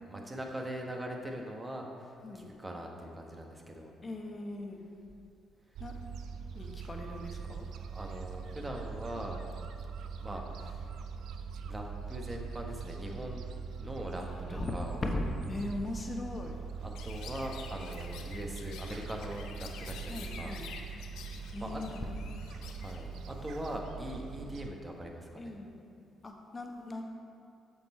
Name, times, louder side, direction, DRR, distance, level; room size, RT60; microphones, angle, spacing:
voice 1, 0.1-3.9 7.9-9.4 10.2-10.8 11.6-13.5 13.8-14.2 14.5-15.0 16.8-20.6 21.6-21.8 22.7-25.5, equal, 20° right, 1 dB, 1.3 m, -41 dB
voice 2, 4.0-4.8 5.8-6.0 6.5-7.7 14.2-14.7 15.0-15.2 15.5-16.6 20.1-20.7 21.5-22.0 22.3-22.4 25.4-25.7 26.2-27.0, left 2 dB, 35° left, 2 dB, 1.2 m, -39 dB
Gull seagull, 5.8-24.7, right 6 dB, 65° right, 0.4 m, -42 dB
Chirp tweet, 16.9-23.8, left 6 dB, 70° left, 0.6 m, -49 dB
7.5 x 6.2 x 4.4 m, 2.4 s
hypercardioid pair, 45°, 0 cm